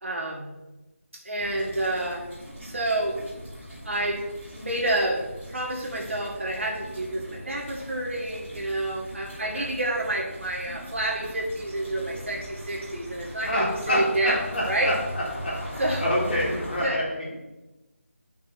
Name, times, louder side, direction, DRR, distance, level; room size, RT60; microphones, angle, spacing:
voice 1, 0.0-0.5 1.2-2.2 2.6-3.2 3.8-4.2 4.6-5.2 5.5-14.4 14.7-14.9 15.8-16.0 16.8-17.0, right 1 dB, 60° right, -1 dB, 2.1 m, -28 dB
sound 1, 1.4-16.8, equal, 10° right, 2.9 m, -40 dB
voice 2, 13.4-17.3, equal, 45° left, -5 dB, 3.0 m, -27 dB
10.0 x 6.0 x 3.1 m, 1.0 s
figure-of-eight pair, 170°, 8 cm